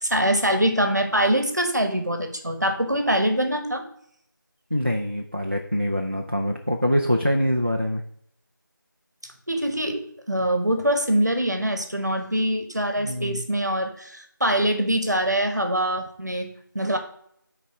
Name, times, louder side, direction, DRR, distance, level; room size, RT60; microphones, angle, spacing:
voice 1, 0.0-3.8 9.5-17.0, right 1 dB, 55° right, 6 dB, 1.4 m, -24 dB
voice 2, 4.7-8.0 13.0-13.4, equal, 35° right, 2 dB, 0.6 m, -24 dB
9.9 x 4.2 x 4.8 m, 0.68 s
figure-of-eight pair, 180°, 11 cm